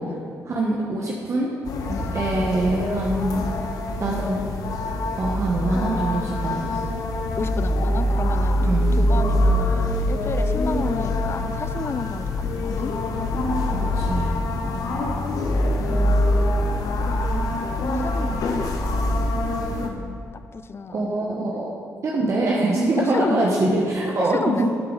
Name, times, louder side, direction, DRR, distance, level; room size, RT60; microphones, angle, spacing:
voice 1, 0.4-1.5 2.1-3.5 4.0-4.5 5.2-6.8 8.6-9.0 13.7-14.4 20.9-21.7 22.0-24.7, right 2 dB, 50° right, -2 dB, 1.2 m, -24 dB
sound 1, 1.6-19.9, left 1 dB, 70° left, 1.1 m, -24 dB
voice 2, 1.9-2.3 7.3-8.6 8.9-12.9 14.6-15.4 15.8-16.2 17.0-19.4 19.8-21.1 21.4-21.7 23.0-23.5 24.2-24.7, left 5 dB, 40° left, 13 dB, 0.5 m, -32 dB
11.5 x 8.5 x 4.0 m, 2.5 s
cardioid pair, 70°, 6 cm